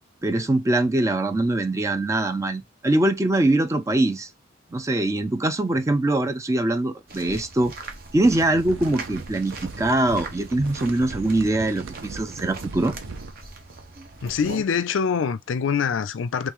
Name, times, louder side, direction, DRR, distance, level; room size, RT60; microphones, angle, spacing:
voice 1, 0.2-4.3 4.7-7.9 8.1-12.9, right 2 dB, 15° right, 0.4 m, -23 dB
sound 1, 7.1-14.6, right 3 dB, 45° right, 0.9 m, -41 dB
sound 2, 8.2-13.3, right 4 dB, 75° right, 0.5 m, -38 dB
voice 2, 14.2-16.5, left 6 dB, 70° left, 0.4 m, -24 dB
3.1 x 3.0 x 3.4 m
head